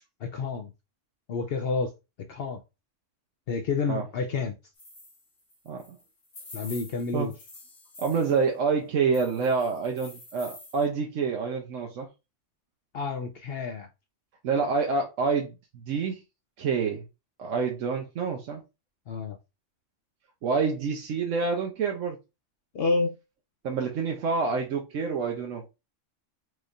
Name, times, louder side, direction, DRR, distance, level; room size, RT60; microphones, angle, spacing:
voice 1, 0.2-0.7 1.3-1.9 2.3-2.6 3.5-4.5 6.5-7.3 12.9-13.9 19.1-19.4 22.7-23.2, left 4 dB, 60° left, 0.7 m, -29 dB
sound 1, 4.7-8.4 9.1-10.9, left 2 dB, 85° left, 1.8 m, -47 dB
voice 2, 5.7-6.0 7.1-7.3 8.0-12.1 14.4-16.2 16.6-17.0 17.4-18.6 20.4-22.2 23.6-25.6, right 5 dB, 85° right, 1.1 m, -27 dB
4.7 x 3.2 x 2.5 m
omnidirectional pair, 1.3 m